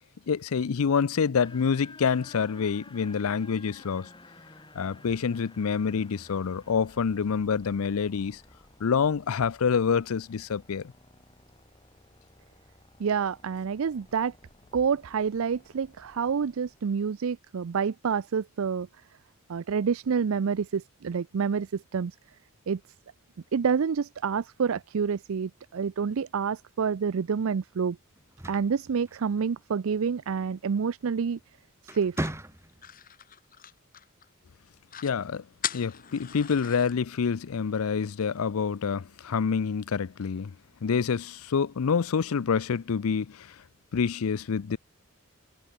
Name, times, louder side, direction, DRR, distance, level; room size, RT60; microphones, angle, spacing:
voice 1, 0.3-4.1 4.7-8.4 8.8-10.9 35.0-35.4 35.7-40.5 40.8-43.5 43.9-44.8, left 6 dB, 75° left, 0.5 m, -27 dB
sound 1, 1.4-17.2, left 2 dB, 20° left, 6.8 m, -54 dB
voice 2, 13.0-14.3 14.7-18.9 19.5-22.2 22.7-22.8 23.5-28.0 28.5-31.4 31.8-32.2, right 6 dB, 65° right, 0.4 m, -28 dB
sound 2, 28.2-29.7 31.1-31.4 31.8-33.0, right 1 dB, 10° right, 1.5 m, -37 dB
sound 3, 31.9-34.3 34.6-34.7 34.9-35.2 35.6-36.9, left 10 dB, 40° left, 2.6 m, -39 dB
head